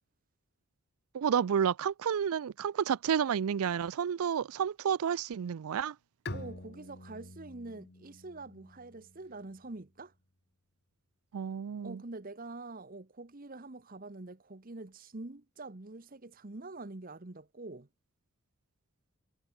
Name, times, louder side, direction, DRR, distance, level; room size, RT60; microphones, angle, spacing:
voice 1, 1.1-6.0 11.3-12.0, right 8 dB, 75° right, 0.4 m, -30 dB
Bowed string instrument, 6.3-9.8, left 2 dB, 45° left, 2.3 m, -46 dB
voice 2, 6.3-10.1 11.8-17.9, right 2 dB, 40° right, 1.1 m, -45 dB
head